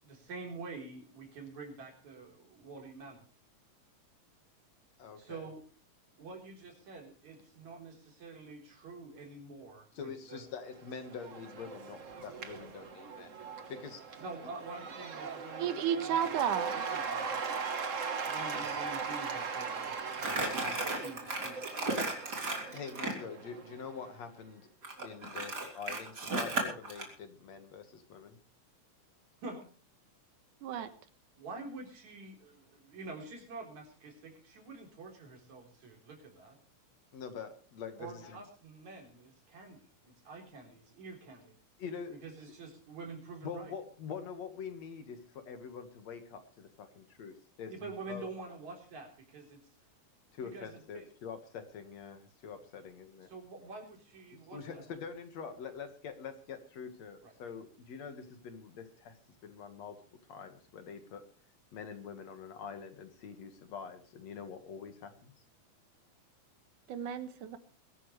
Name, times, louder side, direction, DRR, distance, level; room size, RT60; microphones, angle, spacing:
voice 1, 0.0-3.2 5.2-5.6 6.2-10.4 14.2-16.4 16.7-17.6 18.2-21.6 29.4-29.6 31.4-36.6 38.0-41.5 42.1-43.7 47.7-49.6 50.4-51.1 53.3-54.8 57.2-57.3, right 3 dB, 65° right, 5.3 m, -47 dB
voice 2, 5.0-5.5 9.9-13.4 13.7-14.2 22.7-24.7 25.0-28.4 37.1-38.4 41.8-42.2 43.4-48.3 50.3-53.3 54.3-59.2 59.4-60.0 60.3-61.2 61.7-65.3, left 6 dB, 60° left, 2.8 m, -45 dB
Cheering / Applause / Crowd, 10.7-24.1, right 5 dB, 50° right, 0.9 m, -39 dB
voice 3, 15.4-16.9 30.6-30.9 66.9-67.6, right 9 dB, 85° right, 2.8 m, -33 dB
Crumpling crinkling, 20.1-23.2 24.8-27.1, right 2 dB, 30° right, 3.9 m, -34 dB
22.5 x 13.5 x 3.2 m
omnidirectional pair, 3.5 m